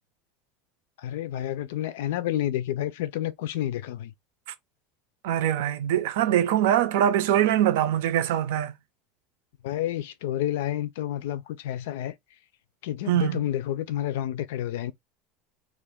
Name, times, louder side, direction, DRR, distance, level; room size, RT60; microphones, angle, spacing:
voice 1, 1.0-4.1 9.6-12.1 12.8-14.9, left 12 dB, 90° left, 0.5 m, -30 dB
voice 2, 5.2-8.7 13.1-13.4, right 11 dB, 80° right, 0.5 m, -23 dB
2.5 x 2.4 x 3.5 m
cardioid pair, 175°, 0 cm